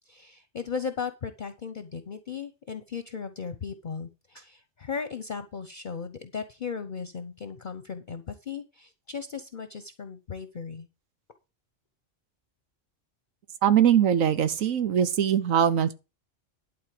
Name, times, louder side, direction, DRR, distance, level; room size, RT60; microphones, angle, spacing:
voice 1, 0.1-10.9, left 6 dB, 45° left, 0.9 m, -36 dB
voice 2, 13.6-15.9, right 9 dB, 90° right, 1.3 m, -22 dB
11.5 x 4.3 x 7.6 m
omnidirectional pair, 1.3 m